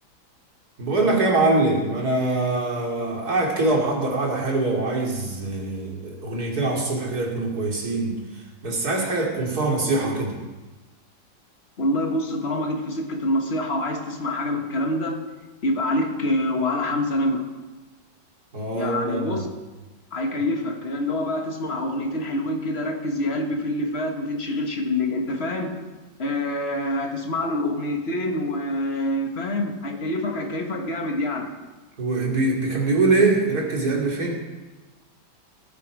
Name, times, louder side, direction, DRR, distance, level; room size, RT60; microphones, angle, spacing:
voice 1, 0.8-8.2 8.6-10.4 18.5-19.4 32.0-34.3, right 2 dB, 50° right, -1 dB, 3.2 m, -23 dB
voice 2, 11.8-15.2 15.6-17.5 18.7-19.5 20.1-25.8 26.2-31.5, left 1 dB, 35° left, 3 dB, 1.6 m, -26 dB
18.5 x 10.0 x 4.7 m, 1.2 s
omnidirectional pair, 2.2 m